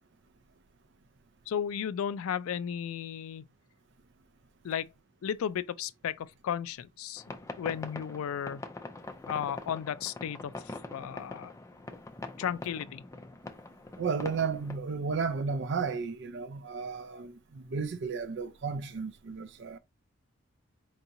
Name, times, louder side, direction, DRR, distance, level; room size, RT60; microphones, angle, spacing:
voice 1, 1.5-3.5 4.6-4.9 5.2-7.2 7.6-8.6 9.3-11.5 12.4-13.0, left 8 dB, 85° left, 0.3 m, -34 dB
sound 1, 7.2-14.8, left 2 dB, 15° left, 0.3 m, -43 dB
voice 2, 14.0-19.8, right 5 dB, 55° right, 0.5 m, -33 dB
4.6 x 2.8 x 2.6 m
head